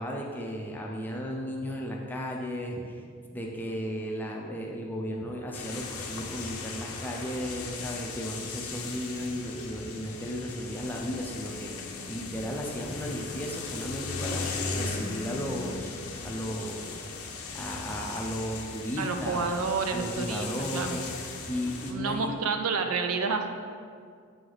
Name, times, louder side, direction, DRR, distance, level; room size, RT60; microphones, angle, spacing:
voice 1, 0.0-3.0 3.3-15.9 16.2-17.0 17.5-19.5 19.9-21.0 21.3-22.3, equal, 10° left, -1 dB, 0.5 m, -35 dB
sound 1, 5.5-21.9, left 4 dB, 70° left, 0.6 m, -38 dB
voice 2, 19.0-20.5 20.7-21.0 21.9-23.5, right 4 dB, 75° right, 6 dB, 0.5 m, -29 dB
7.6 x 3.1 x 3.9 m, 2.1 s
head